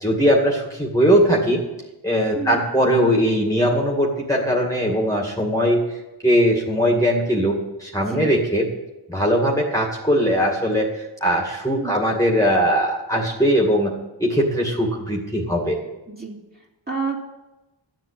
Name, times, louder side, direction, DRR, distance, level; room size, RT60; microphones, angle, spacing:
voice 1, 0.0-1.6 2.0-6.0 6.2-8.7 9.1-13.9 14.2-15.8, equal, 5° left, -1 dB, 2.2 m, -20 dB
voice 2, 16.1-17.2, right 4 dB, 20° right, -2 dB, 3.0 m, -30 dB
12.0 x 7.6 x 8.7 m, 1.1 s
cardioid pair, 45°, 47 cm